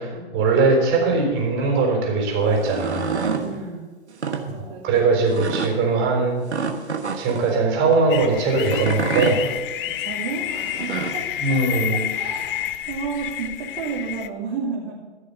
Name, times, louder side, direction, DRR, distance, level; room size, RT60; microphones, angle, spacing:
voice 1, 0.0-3.2 4.8-6.4 7.1-9.4 11.4-12.1, right 3 dB, 35° right, 1 dB, 4.0 m, -20 dB
sound 1, 2.5-3.5 4.1-4.4 5.3-5.7 6.5-7.5 8.6-9.4 10.6-11.2, right 5 dB, 90° right, 1.4 m, -27 dB
voice 2, 3.3-3.9 4.3-5.2 9.2-9.6 9.8-15.1, right 5 dB, 50° right, -5 dB, 3.0 m, -33 dB
sound 2, 8.1-14.3, left 12 dB, 55° left, 0.7 m, -29 dB
15.0 x 6.7 x 6.8 m, 1.3 s
hypercardioid pair, 110°, 33 cm